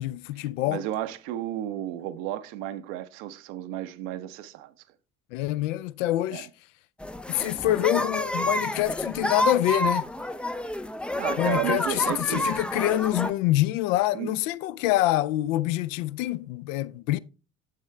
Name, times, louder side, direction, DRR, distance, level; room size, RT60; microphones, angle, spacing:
voice 1, 0.0-0.8 5.3-6.5 7.3-10.0 11.4-17.2, left 15 dB, 65° left, 0.6 m, -26 dB
voice 2, 0.7-4.7 6.3-6.4 11.1-12.5 14.1-14.3, right 12 dB, 60° right, 0.9 m, -33 dB
sound 1, 7.0-13.3, left 1 dB, 5° left, 0.4 m, -29 dB
9.3 x 7.3 x 3.2 m
figure-of-eight pair, 55°, 42 cm